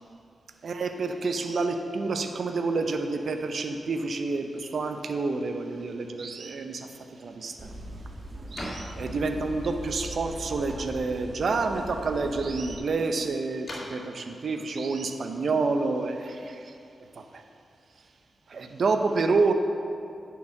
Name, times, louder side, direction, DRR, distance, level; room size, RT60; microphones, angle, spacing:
voice 1, 0.6-7.8 8.5-16.8 17.2-17.4 18.5-19.5, right 3 dB, 70° right, 6 dB, 0.7 m, -28 dB
sound 1, 6.9-16.1, equal, 40° left, 2.1 m, -47 dB
sound 2, 7.6-12.8, equal, 35° right, 1.5 m, -40 dB
9.4 x 4.6 x 6.5 m, 2.5 s
cardioid pair, 60°, 0 cm